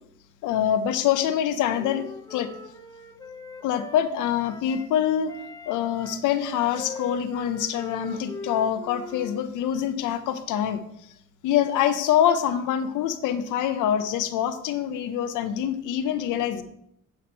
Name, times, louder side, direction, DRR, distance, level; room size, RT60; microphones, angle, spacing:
voice 1, 0.4-2.5 3.6-5.3 5.7-10.8 11.4-16.6, left 9 dB, 90° left, 10 dB, 0.7 m, -25 dB
Wind instrument woodwind instrument, 1.3-4.9 5.3-9.4, left 3 dB, 10° left, 0.8 m, -41 dB
7.9 x 4.2 x 4.4 m, 0.74 s
cardioid pair, 90°, 30 cm